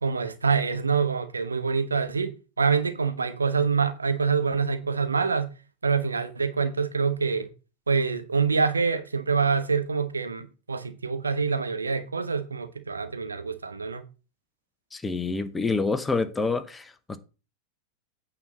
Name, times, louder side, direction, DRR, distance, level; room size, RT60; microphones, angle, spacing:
voice 1, 0.0-5.5 5.8-7.5 7.9-14.0, right 5 dB, 75° right, 1.0 m, -26 dB
voice 2, 14.9-17.2, left 3 dB, 10° left, 0.8 m, -27 dB
9.1 x 4.0 x 7.1 m
figure-of-eight pair, 90°, 0 cm